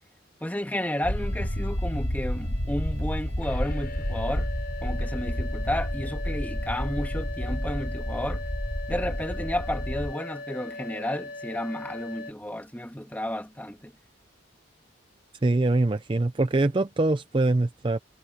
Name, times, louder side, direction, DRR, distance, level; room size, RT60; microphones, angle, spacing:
voice 1, 0.4-4.5 4.8-8.4 8.9-13.9, left 1 dB, 10° left, 2.4 m, -32 dB
sound 1, 1.0-10.1, equal, 70° left, 3.9 m, -30 dB
sound 2, 1.1-12.3, left 2 dB, 50° left, 6.0 m, -41 dB
voice 2, 15.4-18.0, right 2 dB, 25° right, 0.4 m, -23 dB
head